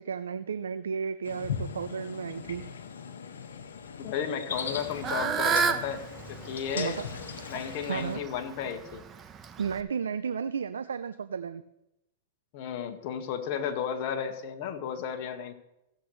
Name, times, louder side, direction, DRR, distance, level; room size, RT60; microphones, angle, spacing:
voice 1, 0.0-2.6 6.8-7.0 7.8-8.2 9.6-11.6, right 6 dB, 85° right, 12 dB, 0.5 m, -33 dB
sound 1, 1.2-8.2, left 6 dB, 85° left, 1.5 m, -39 dB
voice 2, 4.0-7.0 7.5-9.0 12.5-15.5, left 8 dB, 50° left, 5 dB, 1.7 m, -33 dB
Fowl / Bird, 4.5-9.8, right 6 dB, 25° right, 0.9 m, -32 dB
16.0 x 8.0 x 3.2 m, 0.89 s
hypercardioid pair, 115°, 0 cm